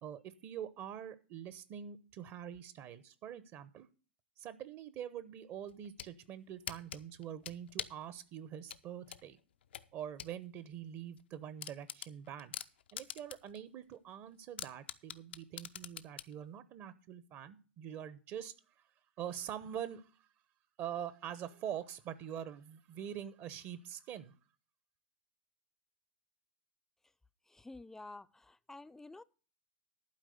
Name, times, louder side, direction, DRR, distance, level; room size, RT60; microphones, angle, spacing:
voice 1, 0.0-3.9 4.4-9.4 9.9-12.6 12.9-18.8 19.2-20.3 20.8-24.3, right 9 dB, 40° right, 0.9 m, -45 dB
sound 1, 5.7-6.1 6.7-8.1 8.7-10.3 10.7-10.8 11.2-11.3 11.6-13.6 13.9-14.0 14.6-16.3, left 10 dB, 70° left, 0.6 m, -44 dB
voice 2, 27.5-29.2, left 2 dB, 5° left, 0.5 m, -51 dB
11.5 x 4.8 x 8.0 m
hypercardioid pair, 95°, 6 cm